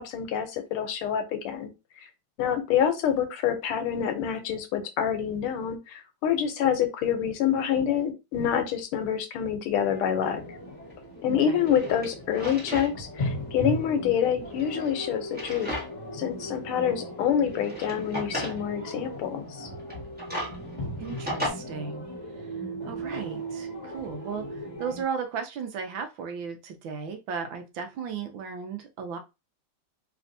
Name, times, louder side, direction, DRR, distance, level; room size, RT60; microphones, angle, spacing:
voice 1, 0.0-1.7 2.4-10.4 11.2-15.7 16.1-19.7, left 8 dB, 90° left, 8 dB, 1.6 m, -27 dB
sound 1, 9.8-25.0, equal, 20° left, 1.5 m, -37 dB
Drawer open or close, 10.9-11.0 11.5-12.9 13.3-13.4 14.4-16.1 16.5-16.6 17.4-18.6 19.8-21.5, equal, 5° right, 1.0 m, -35 dB
voice 2, 11.3-11.6 21.0-22.1 22.9-24.4 24.8-29.2, right 6 dB, 75° right, 6 dB, 1.4 m, -35 dB
3.4 x 3.1 x 2.6 m, 0.26 s
omnidirectional pair, 2.3 m